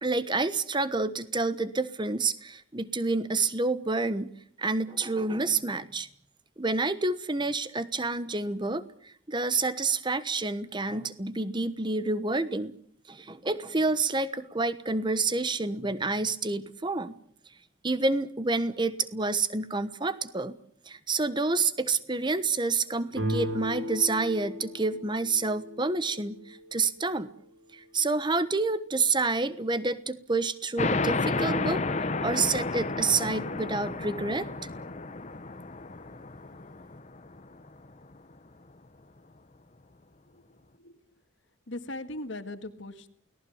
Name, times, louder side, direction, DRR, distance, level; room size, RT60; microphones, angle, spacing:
voice 1, 0.0-4.3 4.6-6.1 6.6-12.7 13.1-17.2 17.8-20.6 20.9-27.3 27.7-31.8 32.2-34.5, right 3 dB, 25° right, 14 dB, 1.1 m, -28 dB
sound 1, 23.1-26.7, equal, 80° right, 5.6 m, -36 dB
sound 2, 30.8-37.9, left 3 dB, 35° left, 1.0 m, -31 dB
voice 2, 41.7-43.1, left 1 dB, 70° left, 8 dB, 1.9 m, -39 dB
29.0 x 18.5 x 7.2 m, 0.63 s
head